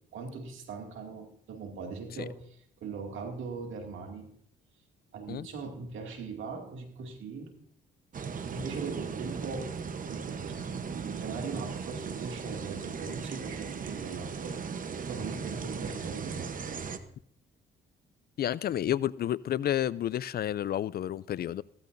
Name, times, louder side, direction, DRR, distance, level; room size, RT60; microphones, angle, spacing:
voice 1, 0.1-4.3 5.1-7.5 8.5-9.7 10.1-14.6 15.1-17.0, right 4 dB, 80° right, 3 dB, 2.4 m, -40 dB
sound 1, 8.1-17.0, right 6 dB, 45° right, 0.9 m, -37 dB
voice 2, 18.4-21.6, left 11 dB, 50° left, 20 dB, 0.4 m, -30 dB
15.0 x 14.0 x 2.6 m, 0.66 s
cardioid pair, 90°, 20 cm